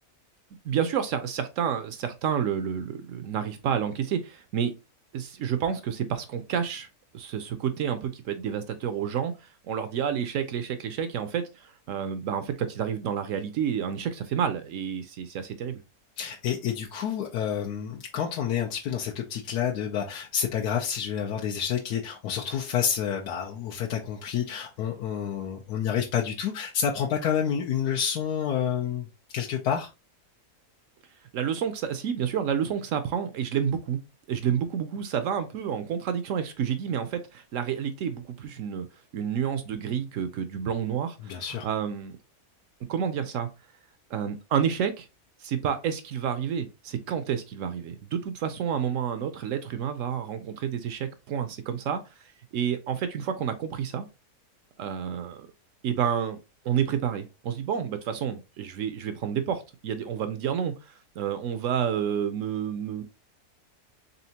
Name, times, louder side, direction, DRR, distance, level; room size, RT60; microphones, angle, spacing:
voice 1, 0.6-4.7 5.1-6.9 7.1-15.8 31.3-34.0 34.3-38.9 39.1-42.2 42.9-43.5 44.1-45.1 45.4-52.0 52.5-54.1 54.8-55.5 55.8-56.4 56.6-63.0, right 8 dB, 65° right, 0.8 m, -29 dB
voice 2, 16.2-29.1 29.3-29.9 41.2-41.7, left 8 dB, 85° left, 1.2 m, -29 dB
4.1 x 3.5 x 2.8 m
omnidirectional pair, 1.6 m